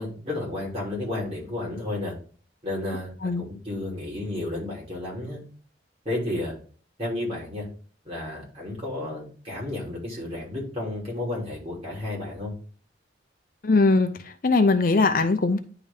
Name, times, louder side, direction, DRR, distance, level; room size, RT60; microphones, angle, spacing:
voice 1, 0.0-2.1 2.6-5.4 6.0-6.5 7.0-7.7 8.0-12.5, left 2 dB, 30° right, 3.2 m, -32 dB
voice 2, 13.6-14.1 14.4-15.6, left 3 dB, 50° left, 0.5 m, -20 dB
9.9 x 3.5 x 3.6 m
head